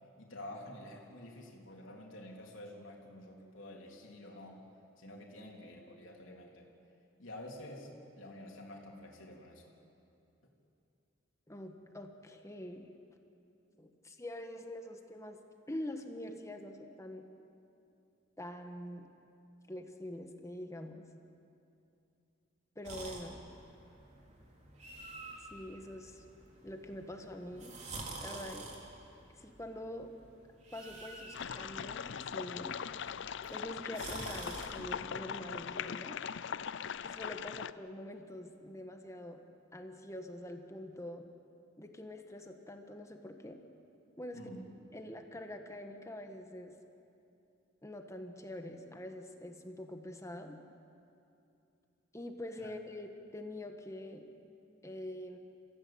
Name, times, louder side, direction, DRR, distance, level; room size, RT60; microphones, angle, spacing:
voice 1, 0.2-4.7 5.0-6.7 7.2-7.9 8.2-9.6 44.3-44.7 52.6-52.7, left 1 dB, 90° left, -1 dB, 3.6 m, -49 dB
voice 2, 11.5-12.9 13.8-15.4 15.7-17.3 18.4-19.1 19.7-21.1 22.8-23.4 25.5-26.2 26.6-27.7 28.2-28.7 29.4-30.1 30.7-32.8 33.5-36.2 37.0-39.4 39.7-41.3 41.8-43.6 44.2-44.4 44.9-46.7 47.8-50.6 52.1-54.3 54.8-55.4, left 1 dB, 15° left, 5 dB, 1.6 m, -45 dB
sound 1, 22.8-34.7, right 2 dB, 40° right, 3.6 m, -49 dB
sound 2, 31.3-37.7, left 7 dB, 65° left, 0.5 m, -40 dB
29.0 x 15.5 x 8.8 m, 2.7 s
head